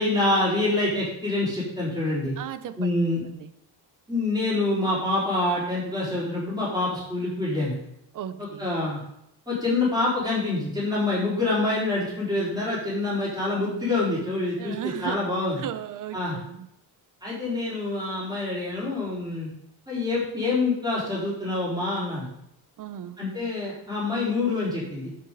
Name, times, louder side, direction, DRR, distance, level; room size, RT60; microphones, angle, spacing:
voice 1, 0.0-2.3 2.8-3.2 4.1-7.8 8.4-9.0 9.5-15.6 16.1-16.4 17.2-19.5 19.9-22.3 23.2-25.1, left 2 dB, 10° right, -8 dB, 4.3 m, -26 dB
voice 2, 2.4-2.8 3.4-3.5 8.1-8.7 14.6-15.2 15.6-16.7 22.8-23.2, right 11 dB, 50° right, 12 dB, 0.7 m, -35 dB
9.5 x 7.4 x 4.0 m, 0.78 s
cardioid pair, 160°, 41 cm